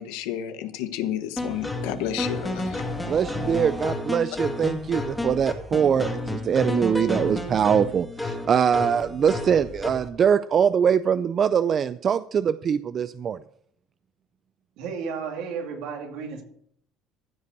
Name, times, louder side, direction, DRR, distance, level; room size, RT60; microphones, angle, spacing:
voice 1, 0.0-2.9, left 11 dB, 85° left, 9 dB, 1.2 m, -31 dB
sound 1, 1.4-10.1, left 2 dB, 10° left, 2.2 m, -31 dB
voice 2, 3.1-13.4, right 7 dB, 40° right, 14 dB, 0.4 m, -23 dB
voice 3, 14.8-16.4, right 6 dB, 75° right, 2 dB, 2.6 m, -33 dB
15.0 x 5.3 x 6.7 m, 0.68 s
supercardioid pair, 105°, 0 cm